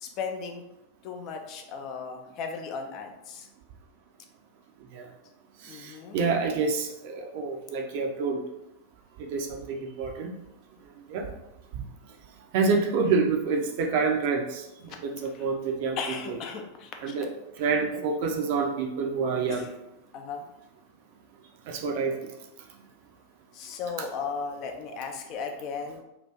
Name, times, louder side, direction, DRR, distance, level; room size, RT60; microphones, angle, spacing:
voice 1, 0.0-0.6 1.0-3.5 5.6-6.2 14.9-15.0 15.3-15.5 16.0-17.2 17.9-18.0 19.5-19.7 20.1-20.4 23.5-26.0, left 5 dB, 40° left, 4 dB, 0.4 m, -36 dB
voice 2, 5.6-8.4 9.2-10.3 11.1-11.3 12.5-16.0 16.3-16.4 17.0-17.3 17.6-19.7 21.7-22.1, right 4 dB, 50° right, 2 dB, 0.5 m, -27 dB
2.9 x 2.5 x 3.4 m, 0.91 s
figure-of-eight pair, 90°, 0 cm